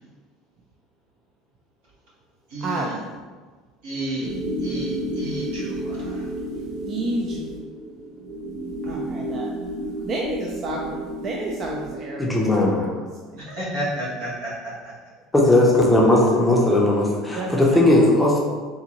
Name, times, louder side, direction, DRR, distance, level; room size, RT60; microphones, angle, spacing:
voice 1, 2.5-3.0 3.8-4.3 4.6-6.2 13.4-14.7, right 1 dB, 80° right, -6 dB, 1.3 m, -31 dB
sound 1, 4.2-12.0, right 1 dB, 55° right, 0.7 m, -31 dB
voice 2, 6.9-7.5 8.8-9.5 10.0-10.9 11.2-13.4 17.4-17.8, right 2 dB, 35° right, -1 dB, 0.3 m, -30 dB
voice 3, 12.2-12.8 15.3-18.4, left 1 dB, 10° left, -3 dB, 0.6 m, -17 dB
3.7 x 2.5 x 2.9 m, 1.4 s
cardioid pair, 140°, 0 cm